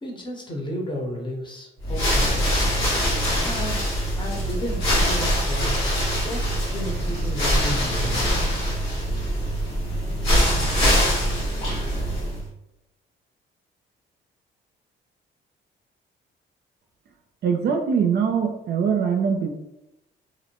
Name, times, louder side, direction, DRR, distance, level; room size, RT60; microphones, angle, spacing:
voice 1, 0.0-2.4 3.4-3.9 4.1-5.9 6.2-8.3, equal, 25° left, 0 dB, 0.7 m, -33 dB
sound 1, 1.8-12.5, equal, 90° left, 1.2 m, -23 dB
voice 2, 17.4-19.5, right 6 dB, 55° right, 4 dB, 0.4 m, -22 dB
2.5 x 2.1 x 2.9 m, 0.88 s
cardioid pair, 90°, 20 cm